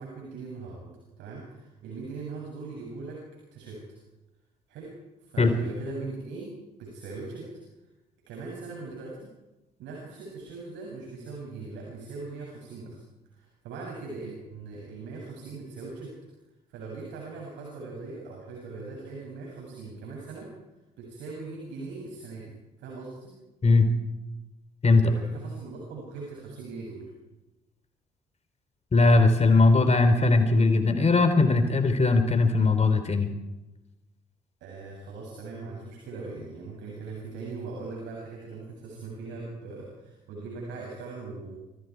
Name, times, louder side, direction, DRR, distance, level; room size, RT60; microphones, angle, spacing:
voice 1, 0.0-3.2 3.5-3.8 4.7-4.9 5.2-6.5 6.8-7.5 8.3-9.3 9.8-13.0 13.3-16.1 16.7-20.5 21.0-22.5 22.8-23.3 25.0-27.1 34.6-41.5, right 3 dB, 65° right, -2 dB, 7.5 m, -40 dB
voice 2, 28.9-33.3, left 3 dB, 30° left, 8 dB, 3.9 m, -20 dB
29.0 x 27.5 x 4.8 m, 1.1 s
figure-of-eight pair, 45°, 21 cm